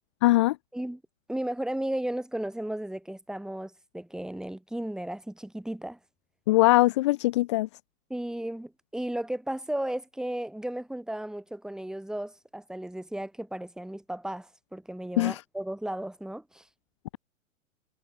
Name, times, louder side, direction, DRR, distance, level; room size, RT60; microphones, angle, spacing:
voice 1, 0.2-0.6 6.5-7.7 15.2-15.4, left 18 dB, 25° left, 0.4 m, -21 dB
voice 2, 1.3-6.0 8.1-16.7, right 1 dB, ahead, 1.9 m, -34 dB
figure-of-eight pair, 105°, 40 cm